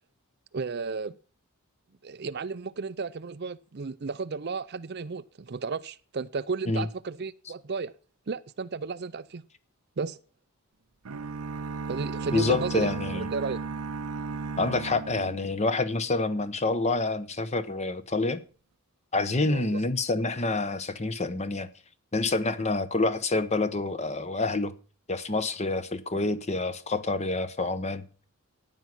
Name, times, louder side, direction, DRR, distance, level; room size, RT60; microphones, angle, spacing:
voice 1, 0.5-1.2 2.0-7.9 8.3-9.4 10.0-10.2 11.9-13.6 19.5-19.8, right 4 dB, 45° right, 0.5 m, -33 dB
sound 1, 11.1-16.0, right 4 dB, 80° right, 0.8 m, -35 dB
voice 2, 12.3-13.3 14.6-18.4 19.1-21.7 22.1-24.7 25.1-28.0, left 3 dB, 30° left, 1.0 m, -27 dB
14.5 x 9.5 x 6.0 m
head